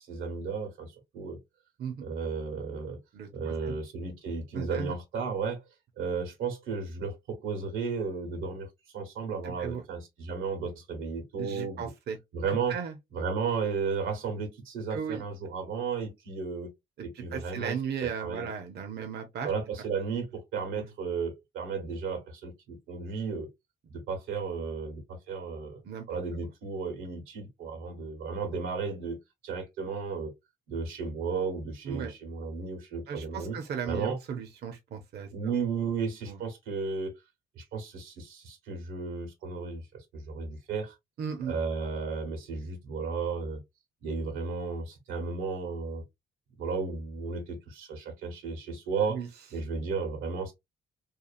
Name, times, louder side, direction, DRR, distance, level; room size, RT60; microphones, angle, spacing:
voice 1, 0.0-1.4 2.0-3.0 3.3-5.6 6.0-8.7 8.9-11.8 12.3-12.8 13.1-16.7 17.0-17.7 18.0-18.5 19.4-23.5 23.9-25.8 26.1-29.2 29.4-30.3 30.7-33.6 33.8-34.2 35.3-37.1 37.5-40.9 41.5-43.6 44.0-46.0 46.6-49.2 49.5-50.5, right 5 dB, 90° right, 1.1 m, -34 dB
voice 2, 3.1-3.8 4.5-4.9 9.4-9.8 11.4-12.2 12.5-12.9 14.9-15.2 17.0-19.5 20.8-20.9 25.8-26.1 31.8-32.1 33.1-35.6 36.3-36.4 41.2-41.6 49.1-49.3, right 7 dB, 55° right, 0.6 m, -36 dB
2.8 x 2.4 x 2.4 m
cardioid pair, 90°, 20 cm